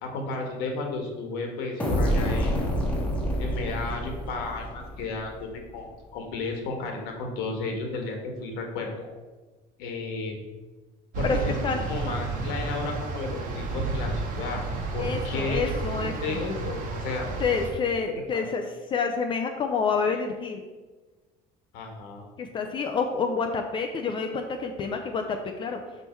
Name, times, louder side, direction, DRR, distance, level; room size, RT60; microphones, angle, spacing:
voice 1, 0.0-2.7 3.4-9.1 9.8-10.4 11.1-11.6 11.9-14.6 14.9-17.3 18.3-18.4 21.7-22.3, left 3 dB, 80° left, 2 dB, 1.6 m, -33 dB
sound 1, 1.8-5.4, equal, 10° left, 1.2 m, -27 dB
sound 2, 11.1-17.7, right 3 dB, 55° right, 1.3 m, -31 dB
voice 2, 11.2-11.8 15.0-16.4 17.4-20.6 22.4-25.8, left 5 dB, 30° left, 4 dB, 0.5 m, -28 dB
5.8 x 5.4 x 4.5 m, 1.3 s
cardioid pair, 150°, 16 cm